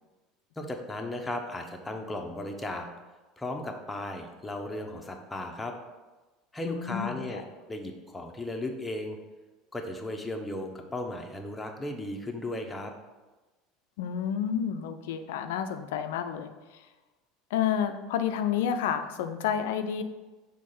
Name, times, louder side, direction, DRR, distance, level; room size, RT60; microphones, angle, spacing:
voice 1, 0.6-2.9 3.4-5.7 6.5-9.2 9.7-12.9, left 1 dB, 10° left, 2 dB, 0.9 m, -36 dB
voice 2, 6.6-7.4 14.0-16.9 17.5-20.0, left 8 dB, 70° left, 8 dB, 0.4 m, -30 dB
6.3 x 3.7 x 4.2 m, 1.2 s
hypercardioid pair, 75°, 0 cm